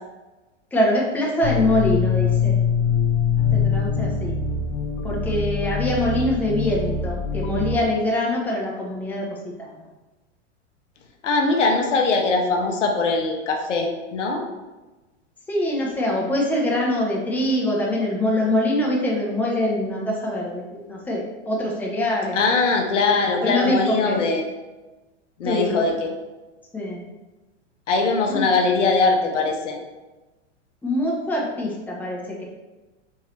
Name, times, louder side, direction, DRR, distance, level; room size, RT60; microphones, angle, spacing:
voice 1, 0.7-2.6 3.5-4.3 5.0-9.7 15.5-22.4 23.4-24.2 25.4-25.9 26.7-27.1 28.3-28.5 30.8-32.4, left 1 dB, 5° left, -3 dB, 0.7 m, -24 dB
sound 1, 1.4-7.8, left 6 dB, 55° left, 0.6 m, -23 dB
voice 2, 11.2-14.4 22.3-24.4 25.4-26.1 27.9-29.8, left 3 dB, 75° left, 2 dB, 0.9 m, -21 dB
4.5 x 2.7 x 3.2 m, 1.1 s
hypercardioid pair, 105°, 36 cm